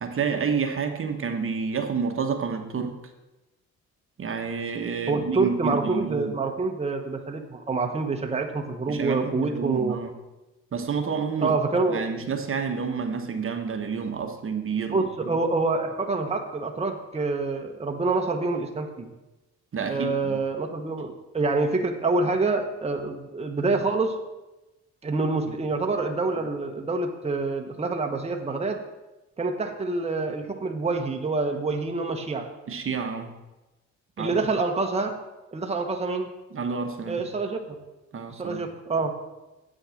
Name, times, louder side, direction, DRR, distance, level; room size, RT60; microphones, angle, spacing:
voice 1, 0.0-3.0 4.2-6.3 8.9-10.1 10.7-11.6 11.9-15.1 19.7-20.4 25.4-25.5 32.7-33.3 34.2-34.4 36.5-37.2 38.1-38.6, right 6 dB, 45° right, 5 dB, 1.1 m, -29 dB
voice 2, 5.1-10.0 11.4-12.0 14.9-19.1 19.9-24.1 25.0-28.8 29.4-32.4 34.2-35.1 35.5-36.3 37.1-37.8 38.3-39.1, right 3 dB, 20° right, 3 dB, 1.1 m, -26 dB
8.6 x 6.3 x 6.4 m, 1.0 s
cardioid pair, 90°, 30 cm